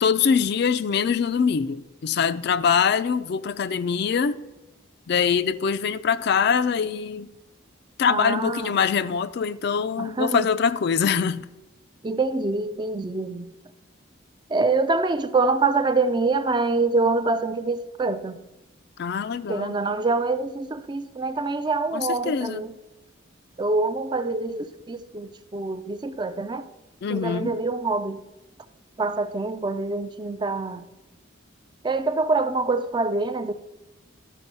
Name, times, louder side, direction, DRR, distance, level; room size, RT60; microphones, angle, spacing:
voice 1, 0.0-4.4 5.1-7.3 8.0-11.5 19.0-19.7 21.9-22.7 27.0-27.5, left 6 dB, 55° left, 0.3 m, -23 dB
voice 2, 8.1-8.7 10.0-10.5 12.0-13.5 14.5-18.4 19.5-22.7 23.6-26.6 27.1-28.2 29.0-30.8 31.8-33.5, right 3 dB, 20° right, 0.3 m, -25 dB
12.0 x 5.2 x 5.4 m
head